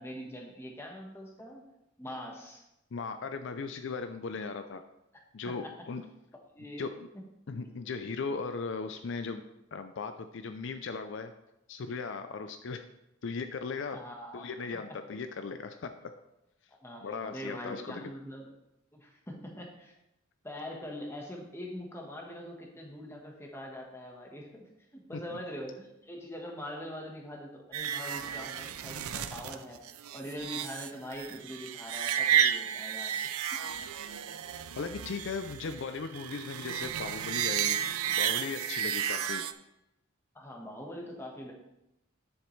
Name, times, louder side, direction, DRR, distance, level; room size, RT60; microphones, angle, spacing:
voice 1, 0.0-1.7 2.0-2.6 5.6-5.7 6.5-6.8 7.1-7.2 13.9-14.5 14.9-15.0 16.8-18.5 18.9-19.9 20.4-29.8 30.1-33.6 40.3-41.5, equal, 10° left, 0 dB, 1.2 m, -43 dB
voice 2, 2.9-4.8 5.3-6.0 6.8-7.1 7.5-9.4 9.7-11.3 11.7-12.9 13.2-14.0 14.3-16.1 17.0-18.1 34.8-37.8 38.1-39.5, left 4 dB, 55° left, 8 dB, 0.4 m, -37 dB
sound 1, 27.7-39.5, right 9 dB, 85° right, 0.5 m, -32 dB
10.0 x 7.2 x 3.2 m, 0.90 s
head